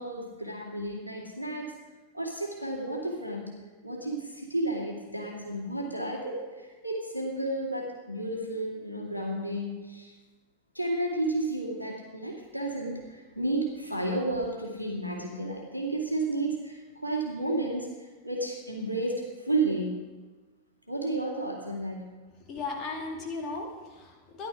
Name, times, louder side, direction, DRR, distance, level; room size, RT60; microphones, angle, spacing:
voice 1, 0.0-1.7 2.1-3.5 3.8-10.2 10.7-20.0 20.9-22.1, right 2 dB, 90° left, -1 dB, 2.2 m, -32 dB
voice 2, 22.5-24.5, left 3 dB, 30° left, 1 dB, 2.4 m, -36 dB
14.5 x 11.0 x 4.9 m, 1.3 s
figure-of-eight pair, 90°, 0 cm